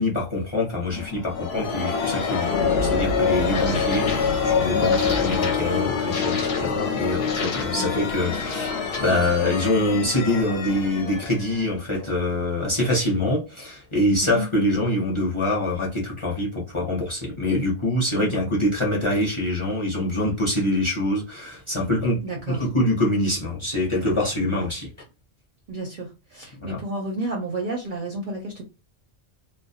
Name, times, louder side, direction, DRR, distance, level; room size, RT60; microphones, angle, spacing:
voice 1, 0.0-24.9 26.6-26.8, left 1 dB, 30° left, 0.6 m, -25 dB
sound 1, 0.9-12.4, left 5 dB, 65° left, 0.8 m, -25 dB
voice 2, 3.4-3.8 5.2-5.4 7.7-7.9 14.2-14.5 18.1-18.4 22.2-22.6 24.3-24.7 25.7-28.7, right 2 dB, 55° right, 0.6 m, -32 dB
2.2 x 2.1 x 2.7 m
omnidirectional pair, 1.2 m